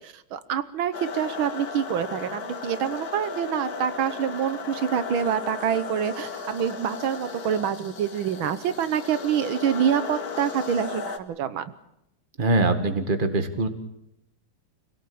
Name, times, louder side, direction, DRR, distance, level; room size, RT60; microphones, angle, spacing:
voice 1, 0.0-11.7, right 8 dB, 85° right, 13 dB, 1.9 m, -26 dB
sound 1, 0.9-11.2, left 5 dB, 50° left, 2.1 m, -36 dB
voice 2, 12.4-13.7, right 2 dB, 25° right, 8 dB, 1.9 m, -23 dB
26.0 x 17.5 x 8.7 m, 0.83 s
omnidirectional pair, 2.1 m